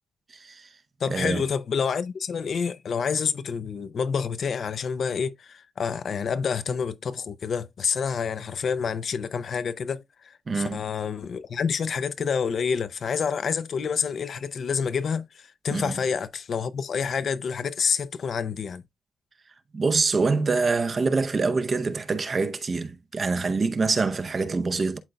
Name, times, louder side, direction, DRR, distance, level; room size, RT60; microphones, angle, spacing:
voice 1, 0.3-0.7 1.1-1.4 10.5-10.8 15.7-16.0 19.7-25.0, right 4 dB, 35° right, 0.7 m, -25 dB
voice 2, 1.0-18.8, left 6 dB, 55° left, 0.5 m, -28 dB
11.5 x 3.8 x 2.2 m
cardioid pair, 95°, 0 cm